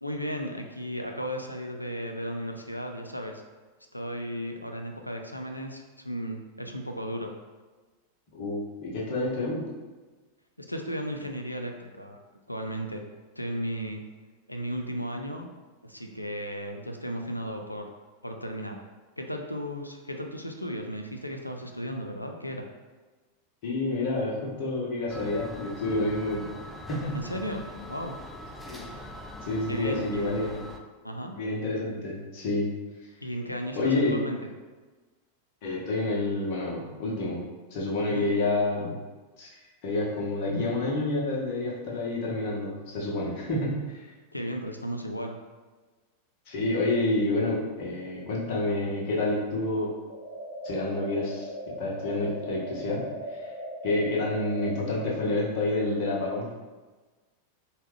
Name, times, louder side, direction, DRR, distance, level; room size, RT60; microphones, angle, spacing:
voice 1, 0.0-3.4 3.9-7.3 10.6-12.2 12.5-13.0 13.4-14.0 14.5-15.5 15.8-17.9 18.2-18.8 19.2-22.7 27.1-28.2 29.7-30.5 31.0-31.3 33.2-34.4 38.1-38.3 38.8-39.0 40.5-40.7 44.3-45.4, equal, 85° left, 3 dB, 0.3 m, -35 dB
voice 2, 8.3-9.7 23.6-26.5 26.9-27.1 28.6-28.9 29.4-30.6 31.4-32.7 33.7-34.2 35.6-37.4 37.7-38.9 39.4-44.1 46.5-49.9 50.6-51.5 51.8-53.0 53.3-53.5 53.8-56.5, left 2 dB, 45° left, -4 dB, 0.9 m, -29 dB
sound 1, 25.1-30.8, left 1 dB, 5° left, 0.3 m, -42 dB
sound 2, 50.1-55.1, equal, 70° left, 0.8 m, -38 dB
3.3 x 2.2 x 3.3 m, 1.3 s
figure-of-eight pair, 90°, 0 cm